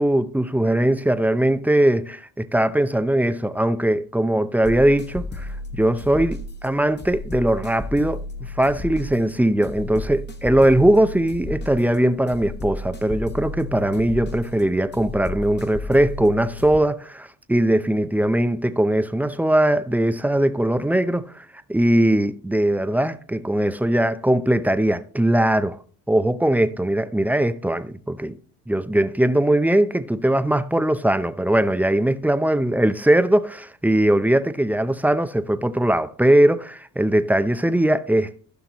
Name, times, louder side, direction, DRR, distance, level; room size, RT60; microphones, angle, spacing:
voice 1, 0.0-25.8 26.1-28.3 28.7-38.4, right 1 dB, 5° right, 0.6 m, -20 dB
sound 1, 4.6-16.8, left 2 dB, 25° left, 1.2 m, -34 dB
15.0 x 5.8 x 2.9 m
supercardioid pair, 85°, 42 cm